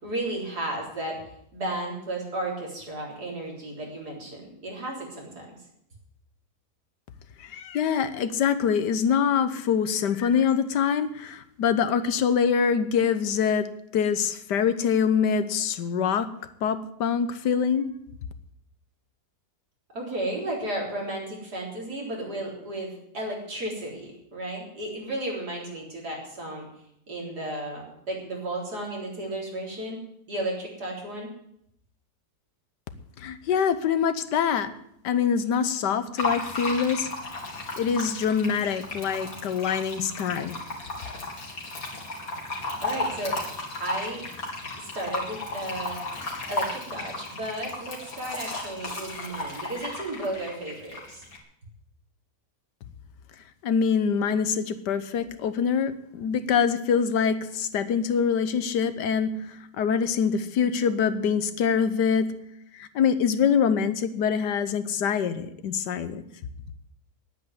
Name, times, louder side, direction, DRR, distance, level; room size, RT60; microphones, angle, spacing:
voice 1, 0.0-5.5 19.9-26.7 27.1-30.0 30.3-31.3 42.8-43.4 43.8-44.2 44.8-46.0 46.5-51.2, right 1 dB, 70° right, -2 dB, 4.5 m, -34 dB
voice 2, 7.4-13.7 13.9-16.3 16.6-17.9 33.2-34.7 35.0-37.1 37.8-40.6 53.6-62.3 62.7-66.2, left 7 dB, 85° left, 12 dB, 1.6 m, -24 dB
Fill (with liquid), 36.2-51.4, left 2 dB, 55° left, 3.1 m, -34 dB
10.5 x 9.2 x 9.5 m, 0.75 s
omnidirectional pair, 1.8 m